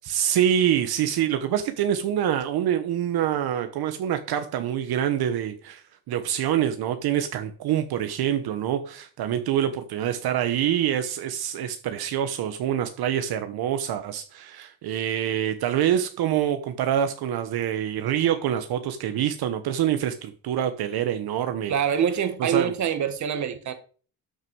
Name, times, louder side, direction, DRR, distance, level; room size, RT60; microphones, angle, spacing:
voice 1, 0.0-5.8 6.1-21.7 22.4-22.7, right 10 dB, 65° right, 1.2 m, -26 dB
voice 2, 21.7-23.7, right 8 dB, 45° right, 1.5 m, -25 dB
12.5 x 6.5 x 4.7 m
cardioid pair, 160°, 40 cm